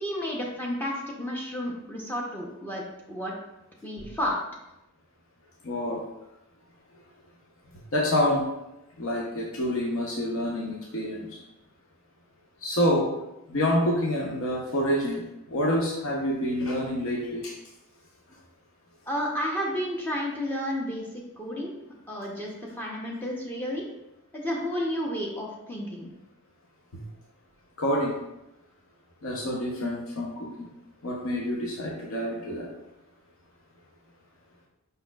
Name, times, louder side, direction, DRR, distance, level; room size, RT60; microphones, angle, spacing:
voice 1, 0.0-3.3 3.8-4.4 19.1-21.7 22.1-23.8 24.3-26.1, equal, 10° left, -2 dB, 0.6 m, -31 dB
voice 2, 5.6-6.0 7.9-8.5 9.0-11.3 12.6-13.1 13.5-15.2 15.5-17.5 27.8-28.1 29.2-30.5 31.0-32.7, left 1 dB, 65° left, -3 dB, 0.7 m, -27 dB
5.2 x 4.2 x 2.3 m, 0.91 s
head